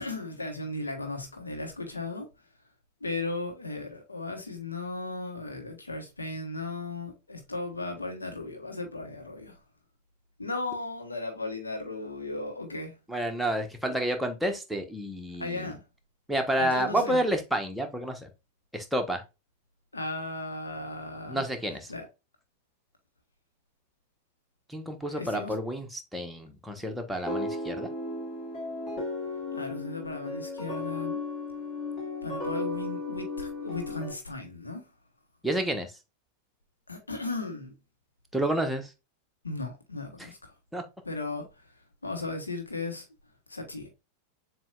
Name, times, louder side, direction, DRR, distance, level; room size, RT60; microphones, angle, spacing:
voice 1, 0.0-2.5 3.0-9.6 10.4-13.0 15.4-15.8 16.6-17.2 19.9-21.4 21.9-22.1 25.1-25.6 29.5-31.2 32.2-34.9 36.9-37.7 39.4-40.6 41.0-43.1 43.5-43.9, left 2 dB, 80° left, 1.4 m, -36 dB
voice 2, 13.1-15.7 16.3-18.3 18.7-19.2 21.3-21.9 24.7-27.9 35.4-35.9 38.3-38.9 40.7-40.8, right 1 dB, ahead, 1.0 m, -30 dB
sound 1, 27.3-34.1, left 2 dB, 30° left, 2.6 m, -35 dB
7.3 x 2.8 x 2.4 m
figure-of-eight pair, 90°, 0 cm